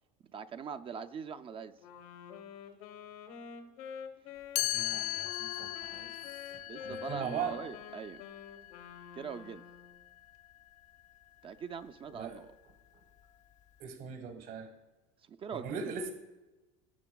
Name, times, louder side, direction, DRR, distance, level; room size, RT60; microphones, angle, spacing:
voice 1, 0.3-1.8 6.7-8.2 9.1-9.6 11.4-12.5 15.3-16.0, right 6 dB, 30° right, 0.5 m, -42 dB
Wind instrument woodwind instrument, 1.8-10.0, left 7 dB, 85° left, 1.1 m, -47 dB
Chime, 4.6-10.4, left 16 dB, 45° left, 0.4 m, -39 dB
voice 2, 4.6-6.1 6.5-7.5 12.1-12.4 13.8-14.7 15.5-16.1, right 6 dB, 55° right, 1.4 m, -40 dB
17.0 x 6.9 x 2.3 m
supercardioid pair, 110°, 17 cm